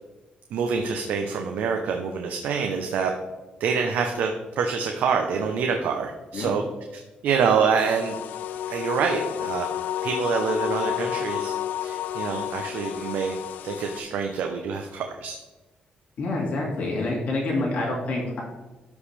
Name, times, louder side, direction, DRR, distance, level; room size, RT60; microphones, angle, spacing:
voice 1, 0.5-3.1 3.6-6.6 7.2-8.2 8.7-9.7 10.0-11.5 11.8-13.3 13.6-15.4, right 6 dB, 85° right, 3 dB, 0.8 m, -26 dB
sound 1, 7.8-14.0, left 11 dB, 90° left, 0.4 m, -31 dB
voice 2, 16.2-18.4, left 2 dB, 55° left, -3 dB, 2.3 m, -27 dB
13.0 x 5.3 x 3.4 m, 1.1 s
cardioid pair, 155°, 3 cm